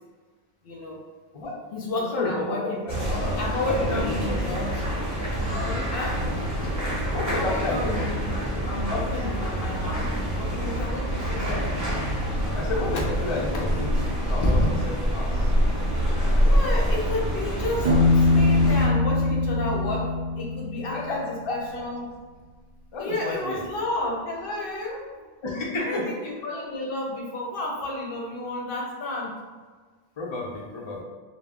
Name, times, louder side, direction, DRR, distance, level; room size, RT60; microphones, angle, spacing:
voice 1, 0.6-1.0 1.7-4.8 5.9-6.3 7.3-11.7 15.9-22.2 23.0-25.1 25.9-29.4, left 2 dB, 65° left, -2 dB, 0.7 m, -32 dB
voice 2, 1.9-2.6 2.8-2.9 3.5-4.4 5.6-5.8 6.6-6.7 7.1-8.1 8.9-9.1 12.6-14.0 14.3-15.5 20.9-21.2 21.5-21.6 22.9-23.6 25.4-26.0 30.2-31.0, left 2 dB, 45° left, -3 dB, 0.4 m, -30 dB
sound 1, 2.9-18.9, equal, 20° right, 0.6 m, -26 dB
Piano, 17.8-21.5, left 2 dB, 65° right, 0.8 m, -22 dB
2.3 x 2.0 x 3.4 m, 1.4 s
omnidirectional pair, 1.1 m